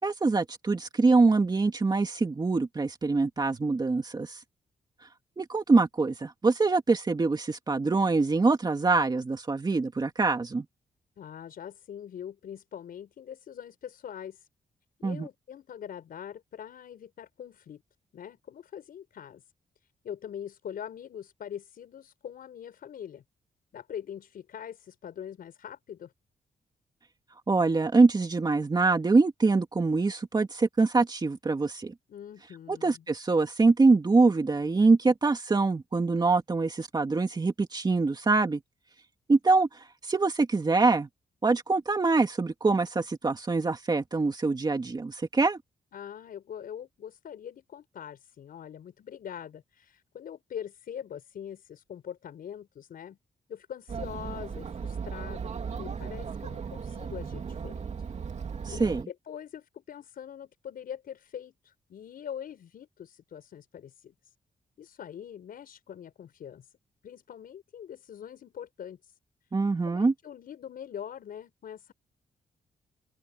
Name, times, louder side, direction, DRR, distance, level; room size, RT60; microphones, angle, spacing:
voice 1, 0.0-4.4 5.4-10.6 15.0-15.3 27.5-31.9 32.7-38.6 39.3-41.1 41.4-45.6 58.7-59.1 69.5-70.1, right 3 dB, 25° right, 2.5 m, -24 dB
voice 2, 11.2-14.5 15.0-17.8 18.1-19.4 20.0-23.2 23.7-26.1 32.1-33.0 45.9-53.2 53.5-55.5 55.8-57.9 58.7-64.3 64.8-66.7 67.0-69.2 69.9-71.9, left 9 dB, 75° left, 6.0 m, -43 dB
Chatter, 53.9-59.0, right 6 dB, 50° right, 2.9 m, -37 dB
open air
cardioid pair, 120°, 15 cm